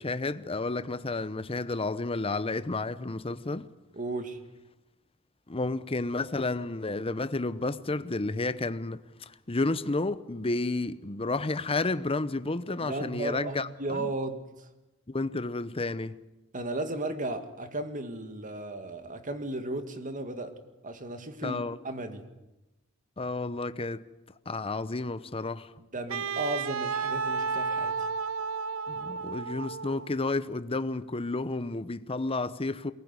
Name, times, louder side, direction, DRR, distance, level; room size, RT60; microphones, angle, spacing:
voice 1, 0.0-3.7 5.5-14.1 15.1-16.2 21.4-21.8 23.2-24.0 24.5-25.7 28.9-32.9, left 2 dB, 25° left, 0.8 m, -31 dB
voice 2, 3.9-4.4 12.8-14.7 16.5-20.6 20.8-22.3 25.8-28.1, right 2 dB, 40° right, 2.1 m, -35 dB
Wind instrument woodwind instrument, 26.1-30.2, right 5 dB, 70° right, 0.8 m, -32 dB
23.0 x 20.0 x 9.7 m
head